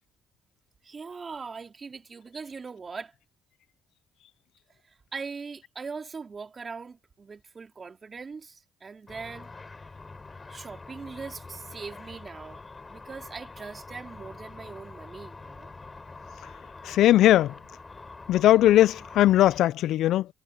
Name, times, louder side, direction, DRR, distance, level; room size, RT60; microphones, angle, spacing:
voice 1, 0.8-3.1 5.1-9.5 10.5-12.6 12.9-15.7, right 5 dB, 40° right, 3.7 m, -40 dB
Car / Traffic noise roadway noise / Engine, 9.1-19.6, left 3 dB, 25° left, 4.8 m, -45 dB
voice 2, 16.8-17.5 18.3-20.3, left 13 dB, 75° left, 0.4 m, -19 dB
supercardioid pair, 65°, 0 cm